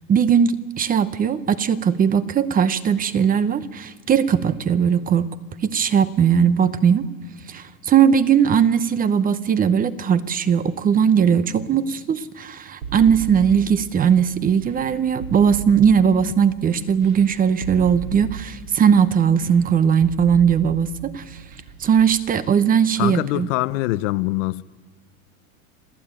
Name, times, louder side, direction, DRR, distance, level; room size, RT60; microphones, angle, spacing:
voice 1, 0.1-5.4 5.6-7.1 7.5-21.4 21.8-23.5, right 7 dB, 20° right, 0.8 m, -19 dB
sound 1, 12.8-22.3, right 6 dB, 70° right, 4.5 m, -37 dB
voice 2, 23.0-24.6, left 18 dB, 60° left, 0.9 m, -23 dB
27.0 x 15.0 x 8.9 m
supercardioid pair, 130°, 43 cm